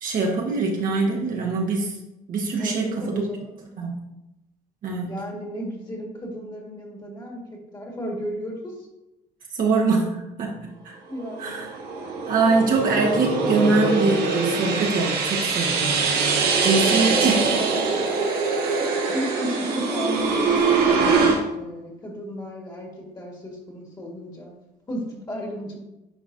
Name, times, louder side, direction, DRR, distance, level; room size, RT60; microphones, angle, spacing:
voice 1, 0.0-1.9 2.3-3.2 3.8-4.0 4.8-5.1 9.6-10.5 10.8-11.0 11.4-11.7 12.3-17.5 17.7-17.8, right 3 dB, 55° right, -1 dB, 1.1 m, -23 dB
voice 2, 2.6-3.5 5.0-8.7 11.1-11.7 18.8-22.9 23.1-24.5 24.9-25.8, equal, 25° left, -1 dB, 1.6 m, -34 dB
sound 1, 11.3-21.4, right 4 dB, 70° right, 1.3 m, -23 dB
9.8 x 3.9 x 2.7 m, 0.95 s
cardioid pair, 110°, 17 cm